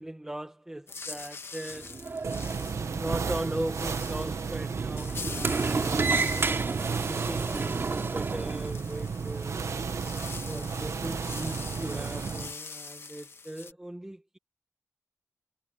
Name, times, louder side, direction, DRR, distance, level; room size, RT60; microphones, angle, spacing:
voice 1, 0.0-2.0 2.8-6.2 6.8-9.7 10.4-14.4, right 1 dB, 10° right, 1.4 m, -38 dB
sound 1, 0.9-13.7, left 4 dB, 45° left, 1.7 m, -44 dB
Sliding door, 1.7-8.7, right 4 dB, 40° right, 3.7 m, -32 dB
sound 2, 2.2-12.5, right 5 dB, 60° right, 1.5 m, -33 dB
wide cardioid pair, 165°, 6 cm